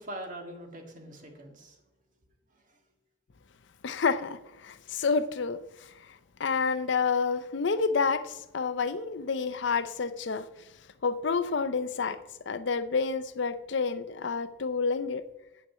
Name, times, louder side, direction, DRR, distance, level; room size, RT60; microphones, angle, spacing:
voice 1, 0.0-1.8 2.5-2.8, right 1 dB, 40° right, 2 dB, 1.9 m, -43 dB
voice 2, 3.8-5.9 6.4-10.5 11.0-12.2 12.5-15.3, left 5 dB, 60° left, 13 dB, 0.5 m, -29 dB
8.2 x 5.8 x 7.9 m, 0.95 s
head